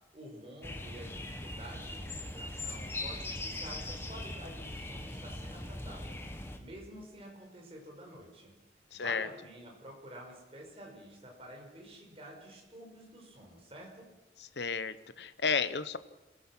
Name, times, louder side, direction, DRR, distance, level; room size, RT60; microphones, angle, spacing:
voice 1, 0.1-8.5 8.9-14.1, right 1 dB, 30° right, 0 dB, 5.6 m, -49 dB
sound 1, 0.6-6.6, left 2 dB, 15° left, 1.5 m, -40 dB
voice 2, 8.9-9.3 14.4-16.0, left 5 dB, 75° left, 14 dB, 1.0 m, -33 dB
27.0 x 16.0 x 6.1 m, 1.1 s
head